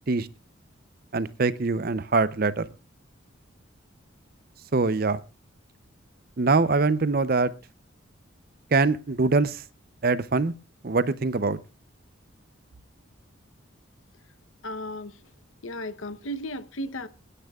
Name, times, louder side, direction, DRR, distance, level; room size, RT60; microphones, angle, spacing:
voice 1, 1.1-2.7 4.7-5.2 6.4-7.5 8.7-9.6 10.0-10.5 10.8-11.6, right 3 dB, 45° right, 0.6 m, -23 dB
voice 2, 14.6-15.2 15.6-17.1, equal, 75° left, 0.9 m, -34 dB
29.5 x 10.0 x 2.4 m
head